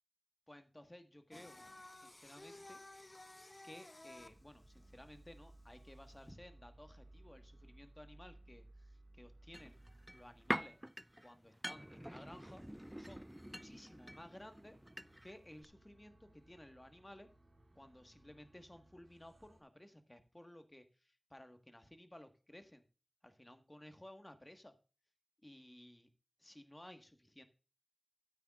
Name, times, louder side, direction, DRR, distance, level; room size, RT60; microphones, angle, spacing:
voice 1, 0.5-1.6 1.9-2.8 3.6-9.8 10.1-10.8 11.2-12.6 13.0-14.8 15.2-17.3 17.7-22.8 23.2-24.7 25.4-26.1 26.4-27.4, left 1 dB, 25° left, 7 dB, 1.5 m, -57 dB
Singing, 1.3-6.3, left 2 dB, 45° left, 0.7 m, -56 dB
sound 1, 4.2-11.9 12.3-19.6, right 1 dB, 75° right, 2.8 m, -63 dB
sound 2, 9.5-15.4 15.6-15.7, equal, 10° right, 0.3 m, -45 dB
13.0 x 9.0 x 2.4 m, 0.35 s
wide cardioid pair, 40°, 0 cm